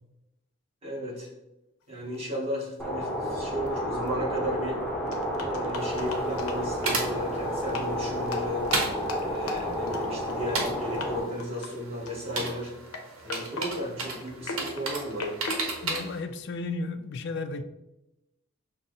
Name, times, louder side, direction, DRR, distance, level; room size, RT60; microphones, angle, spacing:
voice 1, 0.8-1.3 1.9-4.8 5.4-8.7 9.2-12.7 13.2-15.4, equal, 25° right, -5 dB, 1.2 m, -34 dB
sound 1, 2.1-2.2 2.6-2.7 3.7-3.8 4.0-4.1 5.1-7.0 7.6-7.9 8.3-10.7 10.9-11.1 11.4-11.7 12.1-12.4 12.9-16.7, left 3 dB, 90° left, 0.7 m, -37 dB
sound 2, 2.8-11.2, equal, 5° left, 0.6 m, -31 dB
sound 3, 5.8-16.2, right 3 dB, 80° right, 0.9 m, -35 dB
voice 2, 15.8-17.6, left 3 dB, 50° left, 10 dB, 0.3 m, -33 dB
5.5 x 2.0 x 3.8 m, 0.92 s
head